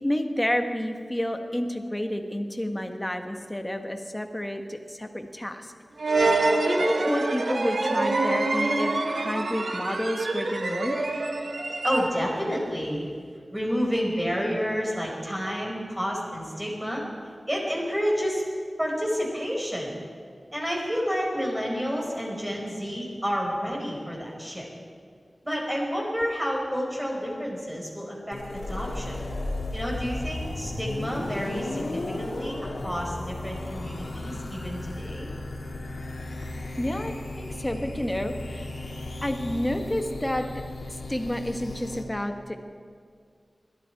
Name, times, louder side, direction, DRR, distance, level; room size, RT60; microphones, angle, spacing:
voice 1, 0.0-5.7 6.7-11.0 36.8-38.7 39.2-40.5 40.9-42.6, left 1 dB, 15° left, 5 dB, 1.3 m, -30 dB
sound 1, 6.0-12.5, right 2 dB, 75° right, 1.1 m, -26 dB
voice 2, 11.8-13.1 13.5-17.0 17.5-18.4 18.8-20.0 20.5-24.7 25.4-29.2 29.7-32.6 32.8-35.3, equal, 10° right, -2 dB, 4.6 m, -30 dB
sound 2, 28.3-42.0, left 2 dB, 75° left, 2.2 m, -35 dB
21.0 x 13.5 x 4.7 m, 2.1 s
wide cardioid pair, 85°, 0 cm